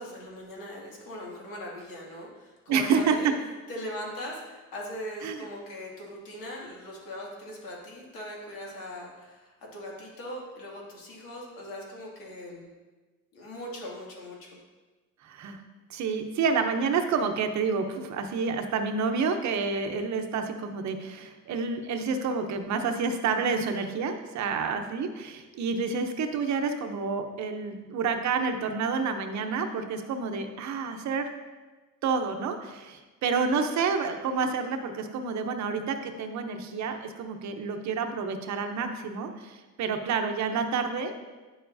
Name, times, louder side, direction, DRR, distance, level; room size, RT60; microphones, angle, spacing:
voice 1, 0.0-3.3 3.7-12.7 13.3-14.5, equal, 70° left, -3 dB, 2.4 m, -40 dB
voice 2, 2.7-3.2 5.2-5.5 15.2-15.6 15.9-31.3 32.0-41.1, right 5 dB, 55° right, 6 dB, 0.8 m, -29 dB
10.0 x 6.9 x 2.7 m, 1.3 s
cardioid pair, 135°, 35 cm